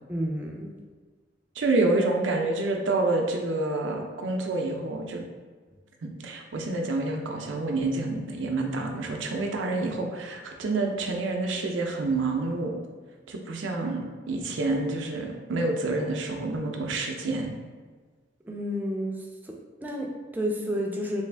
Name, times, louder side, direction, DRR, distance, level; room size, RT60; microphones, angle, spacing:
voice 1, 0.1-0.7 18.4-19.5 19.8-21.2, equal, 10° right, 0 dB, 0.4 m, -31 dB
voice 2, 1.6-5.2 6.0-12.8 13.3-14.0 14.3-17.5, right 2 dB, 80° right, 2 dB, 0.5 m, -28 dB
3.3 x 2.4 x 3.3 m, 1.4 s
head